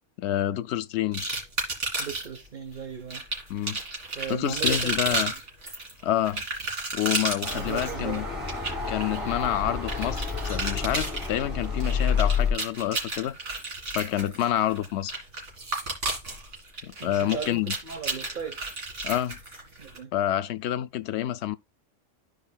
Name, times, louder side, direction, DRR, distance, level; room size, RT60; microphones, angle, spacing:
voice 1, 0.2-1.4 3.5-3.8 4.3-5.3 6.0-6.4 6.9-8.2 8.9-13.4 13.9-15.2 16.8-17.7 19.0-19.4 20.1-21.6, left 12 dB, 70° left, 0.8 m, -28 dB
sound 1, 1.1-2.4 3.1-20.0, right 2 dB, 75° right, 2.8 m, -32 dB
voice 2, 2.0-3.2 4.1-5.4 7.5-8.2 17.0-18.7 19.8-20.1, right 6 dB, 45° right, 1.2 m, -37 dB
sound 2, 7.4-12.5, left 5 dB, ahead, 3.9 m, -29 dB
13.0 x 4.8 x 2.3 m
omnidirectional pair, 1.3 m